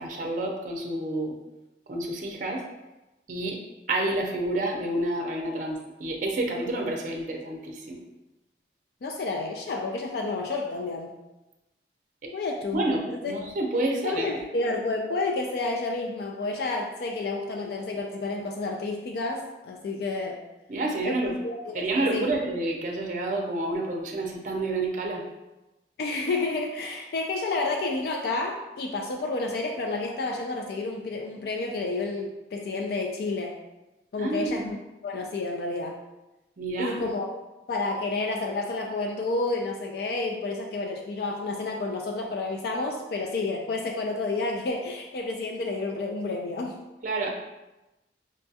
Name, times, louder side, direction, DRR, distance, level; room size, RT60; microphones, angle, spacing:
voice 1, 0.0-1.4 1.9-2.6 3.3-3.6 3.9-8.0 12.2-12.3 12.7-14.3 20.7-21.3 21.7-25.2 34.2-34.7 36.6-37.1 47.0-47.3, right 2 dB, 45° right, 1 dB, 0.5 m, -29 dB
voice 2, 9.0-11.2 12.3-13.3 14.0-20.4 21.0-22.3 26.0-33.6 34.1-34.8 35.0-36.0 36.8-37.3 37.7-46.8, left 3 dB, 60° left, 1 dB, 0.3 m, -30 dB
5.1 x 2.3 x 2.7 m, 1.0 s
head